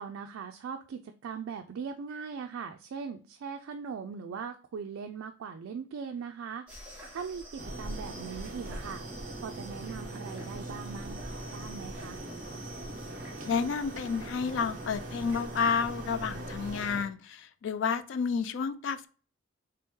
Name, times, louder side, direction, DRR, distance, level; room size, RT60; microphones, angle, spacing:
voice 1, 0.0-11.3 11.5-12.2, right 6 dB, 85° right, 6 dB, 0.3 m, -40 dB
sound 1, 6.7-16.9, equal, 5° right, 1.2 m, -46 dB
sound 2, 7.6-17.0, right 2 dB, 40° right, 0.6 m, -42 dB
voice 2, 13.4-19.1, left 5 dB, 65° left, 12 dB, 0.3 m, -30 dB
3.4 x 2.9 x 3.5 m, 0.39 s
head